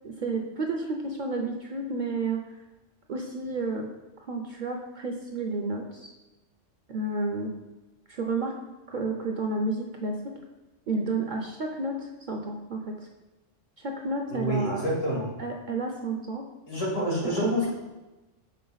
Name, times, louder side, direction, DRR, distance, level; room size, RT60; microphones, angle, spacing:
voice 1, 0.0-2.4 3.1-3.9 4.3-6.1 6.9-7.5 8.1-8.6 8.9-10.2 10.9-13.1 13.8-14.8 15.4-16.4 17.4-17.5, right 3 dB, 50° right, 2 dB, 0.6 m, -31 dB
voice 2, 14.3-15.2 16.7-17.7, equal, 85° left, -5 dB, 2.5 m, -28 dB
6.6 x 4.3 x 3.9 m, 1.1 s
omnidirectional pair, 1.3 m